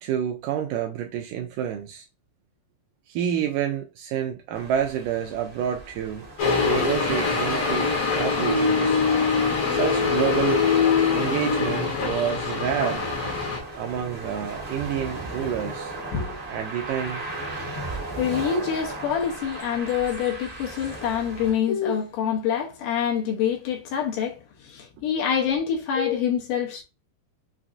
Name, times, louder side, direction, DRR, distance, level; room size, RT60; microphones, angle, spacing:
voice 1, 0.0-2.1 3.1-6.3 6.7-9.0 9.7-10.6 11.1-13.1 13.8-16.0 16.5-17.3, right 9 dB, 80° right, 2.0 m, -28 dB
sound 1, 4.5-21.5, right 2 dB, 35° right, 1.0 m, -37 dB
sound 2, 6.4-13.6, left 5 dB, 60° left, 1.6 m, -23 dB
voice 2, 18.2-26.8, left 8 dB, 75° left, 2.2 m, -26 dB
5.9 x 2.5 x 2.4 m
omnidirectional pair, 4.2 m